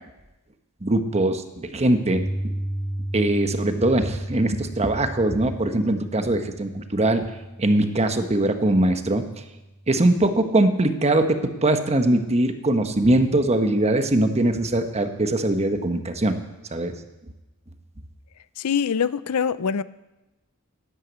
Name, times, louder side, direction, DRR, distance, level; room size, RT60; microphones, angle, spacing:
voice 1, 0.8-2.5 3.1-7.3 7.6-9.2 9.9-16.4 16.7-16.9, right 1 dB, 30° right, 1.1 m, -21 dB
Piano, 2.1-10.2, right 1 dB, 25° left, 2.2 m, -34 dB
voice 2, 18.6-19.8, left 7 dB, 80° left, 0.5 m, -24 dB
11.5 x 11.0 x 8.1 m
head